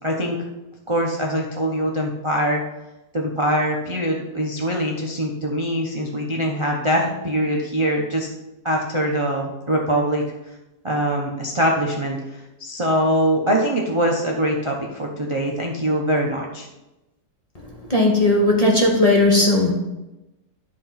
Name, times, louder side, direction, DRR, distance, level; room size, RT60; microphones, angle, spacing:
voice 1, 0.0-0.4 0.9-2.6 3.1-8.3 8.6-10.2 10.8-16.7, equal, 25° right, -1 dB, 0.7 m, -23 dB
voice 2, 17.6-19.7, left 2 dB, 25° left, -2 dB, 1.0 m, -17 dB
11.0 x 3.8 x 5.7 m, 0.98 s
omnidirectional pair, 1.9 m